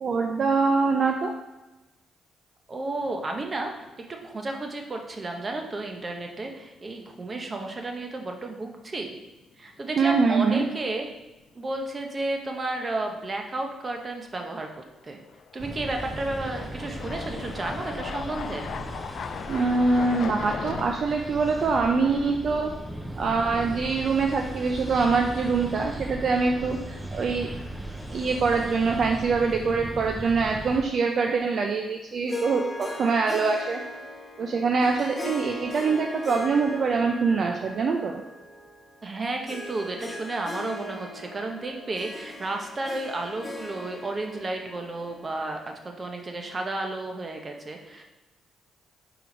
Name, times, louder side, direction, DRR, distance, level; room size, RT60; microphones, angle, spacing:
voice 1, 0.0-1.3 10.0-10.7 19.5-22.7 23.2-27.5 28.1-33.8 34.4-38.2, right 4 dB, 55° right, 3 dB, 0.5 m, -24 dB
voice 2, 2.7-3.9 4.2-9.2 9.6-11.1 11.5-14.7 15.0-15.2 15.5-18.7 39.0-48.0, right 2 dB, 30° right, 3 dB, 1.0 m, -32 dB
sound 1, 3.0-3.6 4.0-4.1 7.0-7.1 8.4-8.7 9.0-9.1 14.4-14.5 15.3-21.0, left 6 dB, 60° left, 0.4 m, -37 dB
sound 2, 15.6-30.8, right 1 dB, 10° right, 0.8 m, -37 dB
Harp, 32.3-45.9, left 1 dB, 20° left, 1.2 m, -39 dB
5.0 x 4.6 x 5.2 m, 1.1 s
cardioid pair, 90°, 0 cm